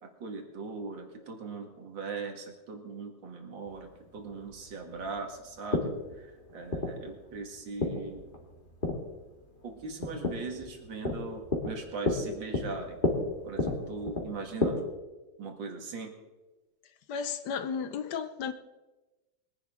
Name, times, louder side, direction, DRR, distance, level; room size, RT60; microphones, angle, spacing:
voice 1, 0.0-8.3 9.6-13.0 13.4-14.8 15.4-16.1, right 4 dB, 70° right, 2.5 m, -40 dB
sound 1, 3.7-14.7, left 2 dB, 25° left, 2.1 m, -33 dB
voice 2, 17.1-18.5, left 6 dB, 65° left, 1.2 m, -33 dB
22.0 x 10.5 x 3.6 m
omnidirectional pair, 2.1 m